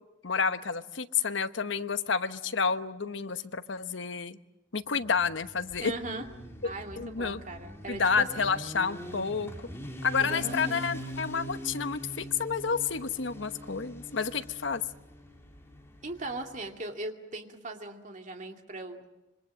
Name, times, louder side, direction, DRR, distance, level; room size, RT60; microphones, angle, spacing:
voice 1, 0.2-4.4 4.7-5.9 7.0-7.4 7.9-9.5 10.0-14.8, left 5 dB, 65° left, 11 dB, 1.0 m, -30 dB
Motorcycle, 5.0-16.7, equal, 15° left, 3.2 m, -43 dB
voice 2, 5.8-6.3 6.6-8.5 10.2-10.8 16.0-19.0, right 2 dB, 40° right, 4 dB, 2.5 m, -39 dB
26.5 x 24.0 x 7.5 m, 0.97 s
head